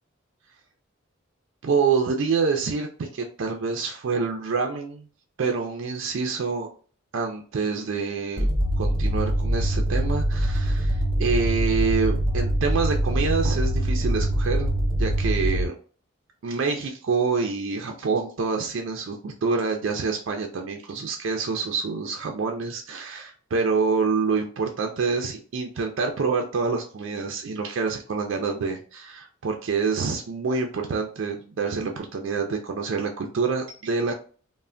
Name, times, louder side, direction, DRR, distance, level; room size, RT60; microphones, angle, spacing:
voice 1, 1.6-5.1 5.4-6.7 7.1-8.5 8.8-14.7 15.0-15.8 16.4-34.1, right 4 dB, 65° right, 3 dB, 0.4 m, -27 dB
sound 1, 8.4-15.7, right 1 dB, 25° right, 0.7 m, -24 dB
3.2 x 2.1 x 2.4 m, 0.41 s
head